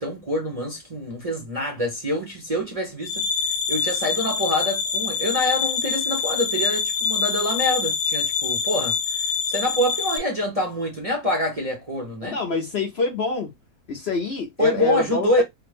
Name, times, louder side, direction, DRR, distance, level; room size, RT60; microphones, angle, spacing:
voice 1, 0.0-3.2 3.7-12.4 14.6-15.4, left 1 dB, 30° right, 0.7 m, -26 dB
sound 1, 3.0-10.2, left 6 dB, 80° left, 1.1 m, -25 dB
voice 2, 12.2-13.5 13.9-15.4, left 3 dB, 55° left, 0.8 m, -26 dB
3.3 x 2.1 x 3.3 m
omnidirectional pair, 1.6 m